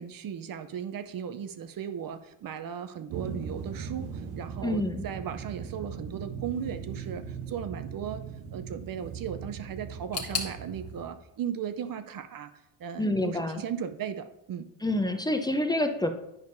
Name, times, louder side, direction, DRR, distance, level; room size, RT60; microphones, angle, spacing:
voice 1, 0.0-8.2 8.5-12.5 12.8-14.7, right 8 dB, 45° right, 11 dB, 0.6 m, -37 dB
sound 1, 3.1-11.0, right 6 dB, 80° right, 0.9 m, -39 dB
voice 2, 4.6-5.1 13.0-13.6 14.8-16.1, left 1 dB, 10° left, 6 dB, 0.6 m, -27 dB
sound 2, 10.1-13.0 13.2-14.1 14.4-14.5 15.3-15.4, left 5 dB, 30° left, 1.4 m, -40 dB
9.5 x 5.2 x 2.6 m, 0.83 s
cardioid pair, 85°, 49 cm